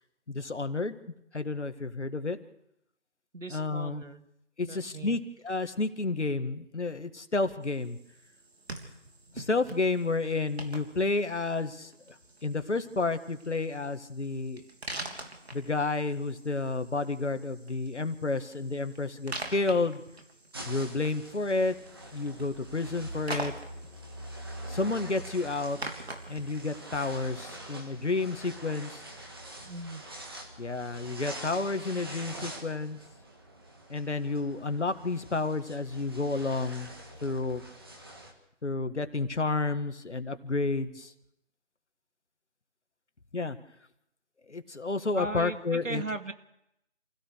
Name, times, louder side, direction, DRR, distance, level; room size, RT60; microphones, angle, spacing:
voice 1, 0.3-1.0 1.3-2.4 3.5-4.0 4.6-8.0 9.3-12.2 12.4-14.6 15.5-20.0 20.7-21.8 22.1-23.5 24.7-25.8 26.3-29.0 30.6-33.0 33.9-36.9 37.2-37.6 38.6-41.1 43.3-43.6 44.5-46.0, left 3 dB, 65° left, 9 dB, 1.9 m, -30 dB
voice 2, 3.3-4.3 4.6-5.2 29.6-30.0 45.1-46.3, right 2 dB, 90° right, 8 dB, 2.3 m, -37 dB
sound 1, 7.6-27.2, right 2 dB, 55° right, 3.5 m, -45 dB
sound 2, 20.5-38.3, right 1 dB, 20° right, 1.9 m, -45 dB
28.0 x 16.5 x 6.5 m, 0.81 s
figure-of-eight pair, 170°, 38 cm